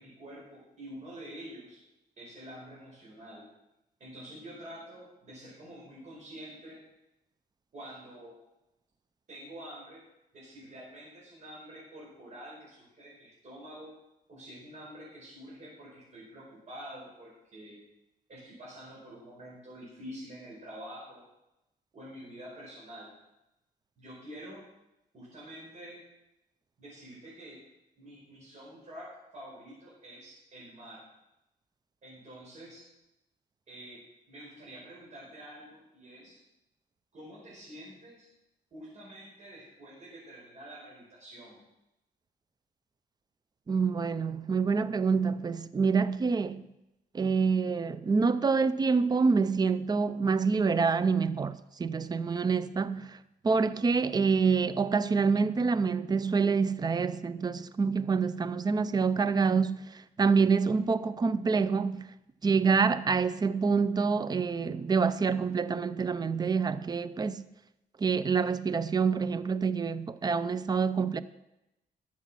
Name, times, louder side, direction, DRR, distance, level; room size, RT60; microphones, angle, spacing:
voice 1, 0.0-1.8 2.2-3.5 4.0-6.8 7.7-8.4 9.3-10.1 10.3-13.9 14.3-17.8 18.3-21.2 21.9-23.1 24.0-24.6 25.1-26.0 26.8-27.7 28.0-31.1 32.0-32.9 33.7-36.4 37.1-38.3 38.7-41.6, equal, 45° right, 4.7 m, -47 dB
voice 2, 43.7-46.7 47.1-53.2 53.4-62.1 62.4-67.4 68.0-71.2, right 5 dB, 25° right, 0.5 m, -27 dB
12.5 x 7.3 x 6.1 m
cardioid pair, 110°, 17 cm